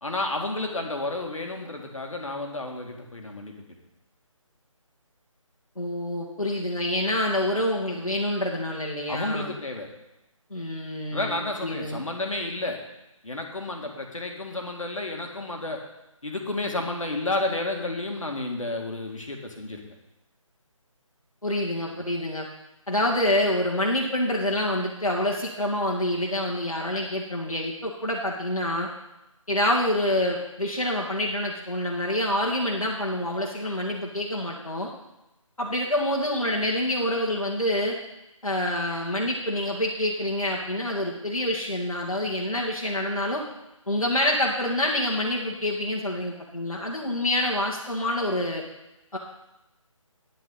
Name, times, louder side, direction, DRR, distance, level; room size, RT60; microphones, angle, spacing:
voice 1, 0.0-3.5 9.1-9.9 11.1-12.8 13.2-15.8 16.2-19.8, left 2 dB, 70° left, 2 dB, 2.2 m, -31 dB
voice 2, 5.8-9.6 10.5-12.0 21.4-22.5 22.9-28.9 29.5-34.9 35.6-38.0 38.4-43.4 43.9-48.6 49.1-49.2, left 1 dB, 85° left, -3 dB, 2.0 m, -27 dB
11.5 x 10.0 x 4.0 m, 0.92 s
figure-of-eight pair, 150°, 18 cm